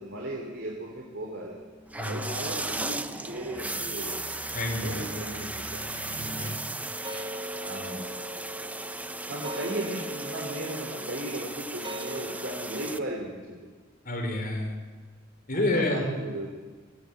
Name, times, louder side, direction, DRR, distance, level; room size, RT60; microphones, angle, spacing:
voice 1, 0.0-1.6 2.1-4.2 4.7-6.0 7.6-8.1 9.3-13.7 15.5-16.5, right 1 dB, 60° right, -1 dB, 3.7 m, -36 dB
sound 1, 1.5-6.5, equal, 25° left, 7.1 m, -46 dB
sound 2, 1.9-13.0, right 2 dB, 5° right, 0.7 m, -36 dB
voice 2, 2.0-2.3 4.5-5.1 6.2-6.6 14.0-14.7 15.5-16.0, left 2 dB, 45° left, 1 dB, 5.1 m, -29 dB
sound 3, 6.8-13.3, equal, 25° right, 1.2 m, -40 dB
22.5 x 18.5 x 8.8 m, 1.4 s
head